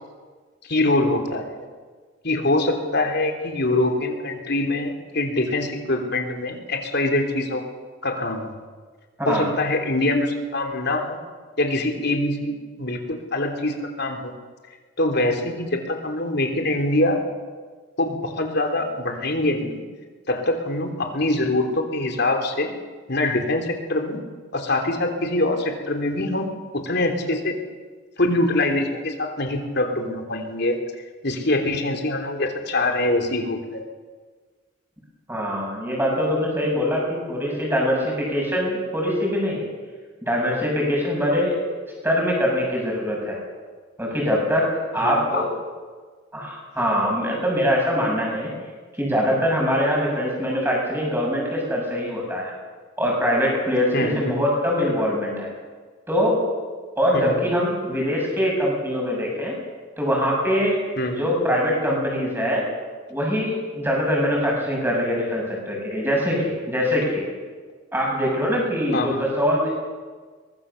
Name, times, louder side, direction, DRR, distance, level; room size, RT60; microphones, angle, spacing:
voice 1, 0.6-1.7 2.2-7.6 8.0-8.5 9.2-11.2 11.6-14.3 15.0-17.2 18.0-19.8 20.3-22.7 23.1-24.2 24.5-27.6 28.2-30.8 31.2-33.8 44.9-45.5 53.9-54.4 57.1-57.4 61.0-61.2 68.9-69.2, left 2 dB, 55° left, 4 dB, 3.3 m, -24 dB
voice 2, 9.2-9.5 35.3-39.7 40.2-41.6 42.0-43.4 44.0-44.7 44.9-45.5 46.3-48.5 48.9-52.5 53.0-55.5 56.1-56.4 57.0-59.6 60.0-62.6 63.1-67.2 67.9-69.7, equal, 10° right, -2 dB, 7.2 m, -23 dB
23.5 x 19.5 x 7.0 m, 1.5 s
head